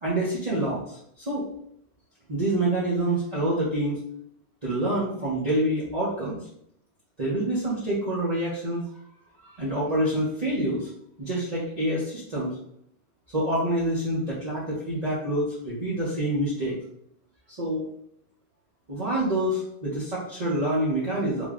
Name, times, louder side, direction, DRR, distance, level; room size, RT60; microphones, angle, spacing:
voice 1, 0.0-1.5 2.3-4.0 4.6-6.4 7.2-8.9 9.4-10.9 11.2-12.5 13.3-16.8 17.5-17.9 18.9-21.5, right 1 dB, 40° right, -8 dB, 0.8 m, -27 dB
3.4 x 2.2 x 3.6 m, 0.70 s
omnidirectional pair, 1.1 m